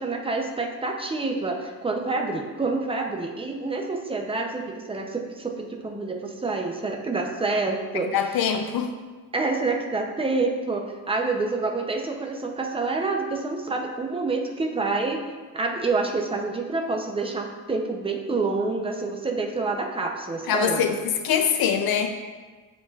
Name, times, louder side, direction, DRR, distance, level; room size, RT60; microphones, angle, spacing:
voice 1, 0.0-8.1 9.3-15.2 15.5-21.0, right 3 dB, 15° right, 2 dB, 0.6 m, -27 dB
voice 2, 7.9-8.9 20.5-22.2, left 7 dB, 70° left, 6 dB, 0.6 m, -24 dB
8.8 x 6.1 x 2.4 m, 1.4 s
cardioid pair, 150°, 37 cm